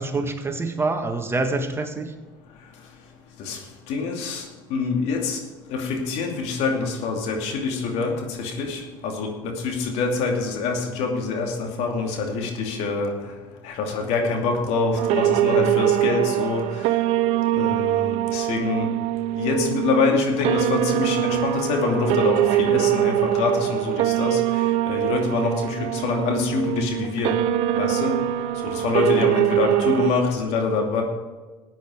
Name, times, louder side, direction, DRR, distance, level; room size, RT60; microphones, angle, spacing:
voice 1, 0.0-2.1, right 3 dB, 20° right, 6 dB, 1.6 m, -26 dB
voice 2, 3.9-4.4 4.7-5.4 5.7-13.1 13.6-16.9 17.5-18.9 19.3-27.4 27.8-28.2 28.6-31.0, left 4 dB, 65° left, 2 dB, 2.6 m, -25 dB
sound 1, 15.0-30.1, right 13 dB, 65° right, 0.6 m, -23 dB
14.0 x 9.1 x 4.9 m, 1.3 s
hypercardioid pair, 75°, 12 cm